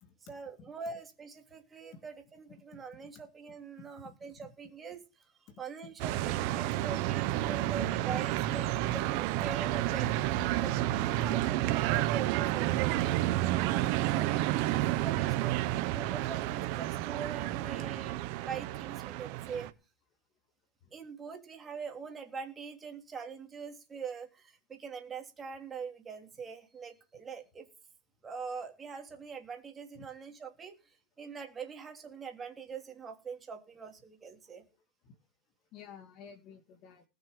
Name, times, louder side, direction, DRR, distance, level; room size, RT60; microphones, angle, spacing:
voice 1, 0.3-8.7 8.9-10.2 10.6-15.5 15.9-19.7 20.9-27.6 28.2-30.7 31.2-34.6, right 5 dB, 15° right, 3 dB, 3.2 m, -43 dB
voice 2, 2.7-3.1 3.8-4.2 5.5-5.6 6.7-6.8 11.2-11.3 13.0-13.1 14.9-15.0 20.8-20.9 30.0-30.1 35.0-35.2 35.7-37.0, left 6 dB, 35° left, 9 dB, 2.1 m, -52 dB
sound 1, 6.0-19.7, right 15 dB, 45° right, 1.1 m, -30 dB
19.5 x 6.7 x 5.2 m, 0.31 s
supercardioid pair, 150°, 0 cm